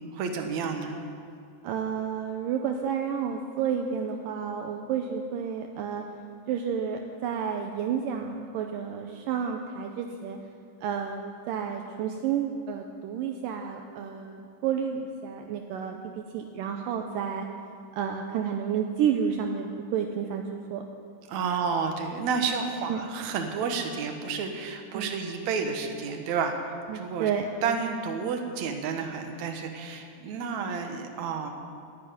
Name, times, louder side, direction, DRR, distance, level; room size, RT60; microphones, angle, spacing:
voice 1, 0.1-0.9 21.3-27.3 27.6-31.5, right 5 dB, 60° right, 4 dB, 2.3 m, -30 dB
voice 2, 1.6-6.0 6.5-10.4 10.8-17.5 17.9-20.4 20.7-20.8 21.5-21.6 22.9-23.0 24.9-25.1 26.9-27.5, right 7 dB, 75° right, 3 dB, 2.3 m, -30 dB
13.5 x 10.5 x 9.4 m, 2.3 s
omnidirectional pair, 4.2 m